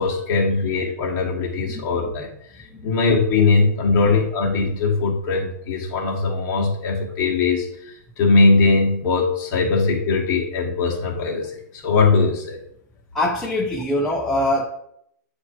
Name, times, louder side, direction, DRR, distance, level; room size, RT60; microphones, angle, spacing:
voice 1, 0.0-2.3 2.8-7.7 8.2-12.6, left 3 dB, 30° left, 1.3 m, -20 dB
voice 2, 13.1-14.7, left 1 dB, 5° left, 0.4 m, -23 dB
7.9 x 2.7 x 4.4 m
hypercardioid pair, 155°, 10 cm